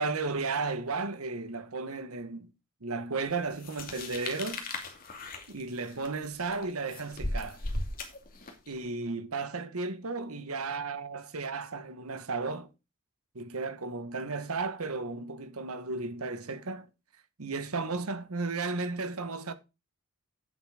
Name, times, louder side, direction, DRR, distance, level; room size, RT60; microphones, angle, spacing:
voice 1, 0.0-2.5 2.8-4.7 5.5-7.6 8.7-12.7 13.3-16.9 17.4-19.5, right 3 dB, 85° right, 1.3 m, -34 dB
sound 1, 3.6-8.7, left 2 dB, 40° left, 2.4 m, -37 dB
9.3 x 7.6 x 4.9 m
head